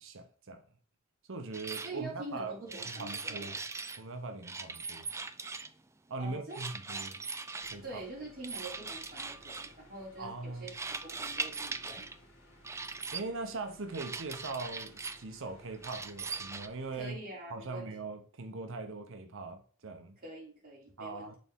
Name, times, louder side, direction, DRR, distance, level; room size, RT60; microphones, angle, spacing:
voice 1, 0.0-0.6 1.3-3.6 4.0-5.1 6.1-7.2 7.7-8.0 10.2-10.7 13.1-17.2 17.5-20.2 21.0-21.3, right 3 dB, 65° right, 0.8 m, -41 dB
sound 1, 1.5-1.9 2.7-4.0 4.4-5.8 6.5-7.8 8.4-9.7 10.7-12.2 12.6-13.2 13.9-15.2 15.8-16.7, right 4 dB, 15° right, 0.4 m, -40 dB
voice 2, 1.8-3.5 6.2-7.0 7.8-12.1 16.9-17.9 20.2-21.3, right 2 dB, 45° right, 3.1 m, -45 dB
sound 2, 7.6-17.1, left 1 dB, 70° left, 2.1 m, -60 dB
6.8 x 4.1 x 3.5 m
head